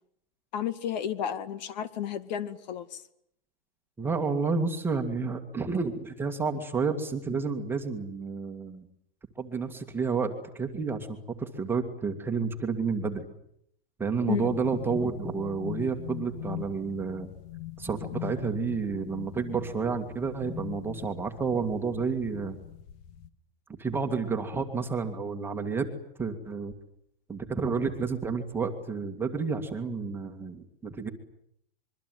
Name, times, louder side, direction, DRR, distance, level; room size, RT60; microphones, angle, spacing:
voice 1, 0.5-3.0 14.3-14.6, left 10 dB, 45° left, 12 dB, 2.2 m, -32 dB
voice 2, 4.0-8.8 9.4-13.3 14.0-17.3 17.8-22.6 23.8-25.9 26.2-26.7 27.3-31.1, right 4 dB, 5° right, 5 dB, 2.1 m, -30 dB
sound 1, 14.4-23.3, left 15 dB, 30° left, 1.6 m, -42 dB
25.5 x 23.5 x 9.4 m, 0.72 s
hypercardioid pair, 165°, 30 cm